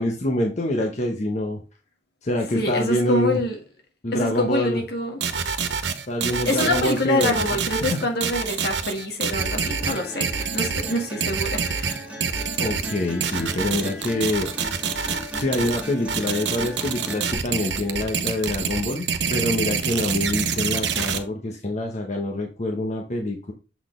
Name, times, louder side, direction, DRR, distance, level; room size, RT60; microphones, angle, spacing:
voice 1, 0.0-1.6 2.2-3.4 4.0-4.8 6.1-8.0 12.6-14.5 15.3-23.5, left 1 dB, 40° left, 0.9 m, -26 dB
voice 2, 2.5-3.6 4.1-5.2 6.5-12.0, left 1 dB, 65° left, 1.6 m, -26 dB
sound 1, 5.2-21.2, right 6 dB, 85° right, 0.8 m, -26 dB
sound 2, 9.4-17.4, left 1 dB, 5° right, 1.7 m, -37 dB
7.1 x 4.0 x 3.7 m
head